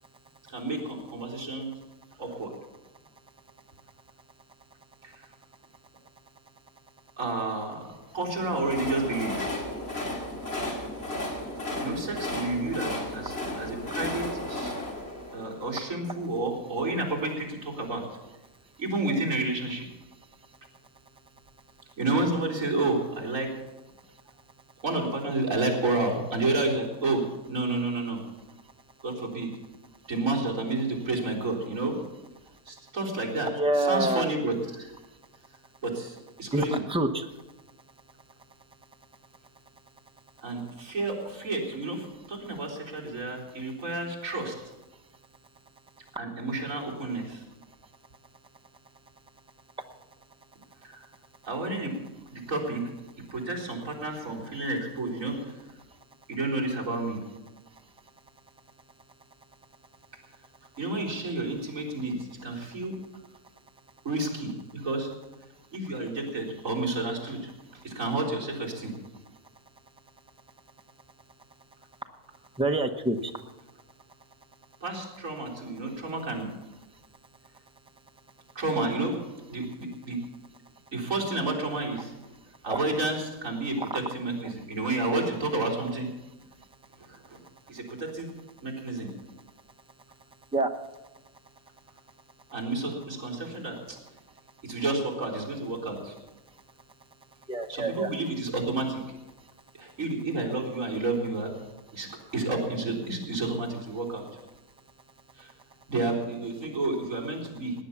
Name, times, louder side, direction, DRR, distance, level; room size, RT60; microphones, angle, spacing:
voice 1, 0.5-1.7 2.2-2.5 5.0-5.2 7.2-7.8 8.1-9.5 11.8-14.7 15.3-18.0 18.8-19.8 22.0-23.5 24.8-28.2 29.0-29.5 30.1-32.0 32.7-33.5 33.9-34.9 35.8-36.8 40.4-44.5 46.2-47.4 50.8-51.0 51.5-51.9 52.3-52.8 53.3-55.5 56.3-57.2 60.8-62.9 64.0-65.1 65.7-67.5 67.8-68.9 74.8-76.5 78.5-79.1 79.5-80.2 80.9-82.1 82.6-86.1 87.0-87.4 87.7-88.3 88.6-89.1 92.5-94.0 94.6-96.1 97.7-99.0 99.8-101.5 101.9-102.1 102.3-104.2 105.4-105.5 105.9-107.7, right 2 dB, 60° right, -4 dB, 4.5 m, -30 dB
Train, 8.2-16.3, left 1 dB, 40° left, 2.8 m, -34 dB
voice 2, 33.5-34.3 36.5-37.3 72.5-73.3 82.6-82.8 83.8-84.0 84.4-84.5 90.5-90.7 97.5-98.1, right 2 dB, 5° right, 5 dB, 0.8 m, -27 dB
18.5 x 9.9 x 7.2 m, 1.1 s
omnidirectional pair, 1.6 m